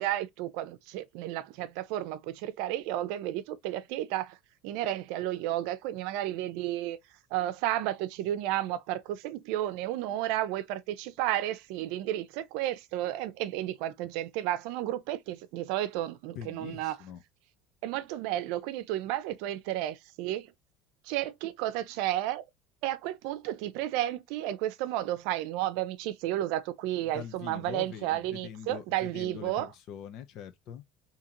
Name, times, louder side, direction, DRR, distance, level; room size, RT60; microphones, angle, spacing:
voice 1, 0.0-4.4 4.6-7.0 7.3-17.0 17.8-20.5 21.0-22.4 22.8-29.7, right 13 dB, 75° right, 0.5 m, -32 dB
voice 2, 16.3-17.2 27.1-30.8, left 8 dB, 60° left, 0.7 m, -43 dB
3.8 x 2.9 x 2.9 m
cardioid pair, 130°, 0 cm